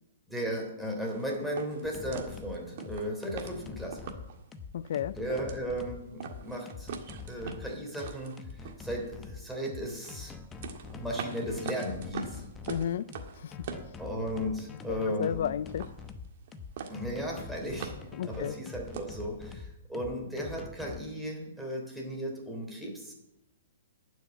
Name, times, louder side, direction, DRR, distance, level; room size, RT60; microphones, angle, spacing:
voice 1, 0.3-4.0 5.2-6.9 7.3-10.3 10.9-12.4 14.0-15.4 16.9-17.9 18.2-23.1, equal, ahead, 3.3 m, -35 dB
sound 1, 1.1-4.4 4.9-5.0 5.2-5.9 6.2-9.4 9.9-14.6 14.8-15.4 15.7-16.5 16.8-17.2 17.5-19.2, right 6 dB, 55° right, 1.8 m, -43 dB
sound 2, 1.8-21.0, left 5 dB, 15° left, 0.8 m, -45 dB
voice 2, 4.7-5.2 12.7-13.1 13.4-13.6 14.9-15.9 18.2-18.5, left 9 dB, 65° left, 0.4 m, -32 dB
12.0 x 6.3 x 9.4 m
hypercardioid pair, 145°, 0 cm